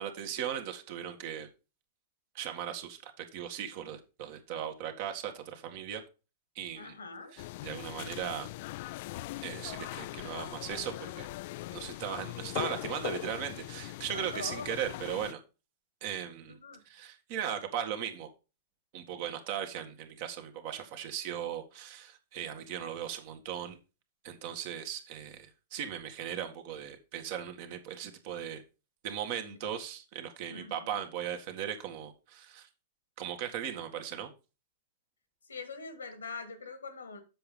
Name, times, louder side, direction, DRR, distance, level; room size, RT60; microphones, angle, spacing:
voice 1, 0.0-1.5 2.3-6.0 6.6-6.9 7.3-8.5 9.4-11.3 11.7-15.4 16.0-16.6 16.9-18.3 18.9-23.8 24.2-28.6 29.0-32.7 33.2-34.3, right 9 dB, 55° right, 1.8 m, -38 dB
voice 2, 6.8-7.3 14.1-14.9 16.5-16.8 22.4-22.6 30.5-31.0 35.5-37.2, left 4 dB, 85° left, 1.9 m, -43 dB
sound 1, 7.4-15.3, left 18 dB, 55° left, 0.3 m, -40 dB
7.7 x 6.0 x 5.2 m
hypercardioid pair, 105°, 0 cm